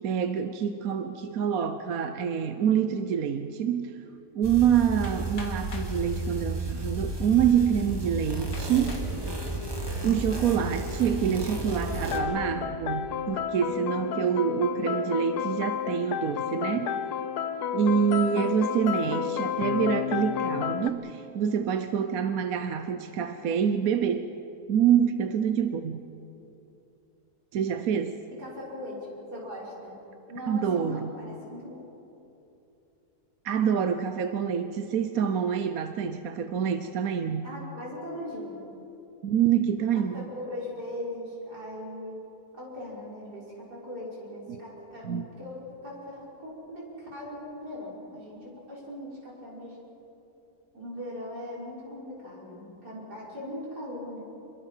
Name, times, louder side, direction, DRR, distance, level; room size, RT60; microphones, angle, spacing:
voice 1, 0.0-4.0 4.3-9.0 10.0-16.9 17.7-24.3 24.7-26.0 27.5-28.1 30.5-31.1 33.4-37.5 39.2-40.3 44.5-44.6 45.0-45.3, right 8 dB, 65° right, 8 dB, 1.2 m, -26 dB
sound 1, 4.4-12.2, right 1 dB, 15° right, 2.1 m, -33 dB
Hammer, 5.0-6.0 6.9-7.0 7.6-7.7 8.5-9.1 9.7-10.1, left 3 dB, 60° left, 2.6 m, -45 dB
sound 2, 11.9-20.9, left 8 dB, 80° left, 1.4 m, -31 dB
voice 2, 28.4-30.0 30.3-31.8 37.4-38.6 40.1-42.2 42.5-45.1 45.4-49.8 50.7-54.2, left 1 dB, 80° right, -5 dB, 6.5 m, -39 dB
27.5 x 22.5 x 5.7 m, 2.9 s
omnidirectional pair, 1.7 m